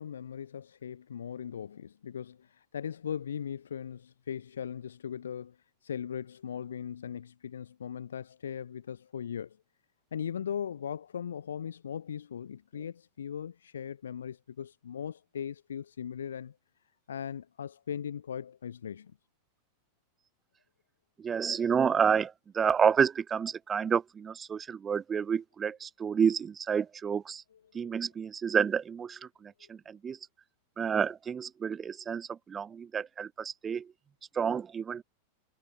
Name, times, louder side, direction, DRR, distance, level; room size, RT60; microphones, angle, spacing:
voice 1, 0.0-5.6 5.8-9.6 10.1-16.6 17.1-19.1 27.5-27.9, left 8 dB, 65° left, 4.1 m, -39 dB
voice 2, 21.2-27.4 27.7-30.2 30.8-33.9 34.3-35.0, right 7 dB, 20° right, 3.3 m, -29 dB
figure-of-eight pair, 90°, 0 cm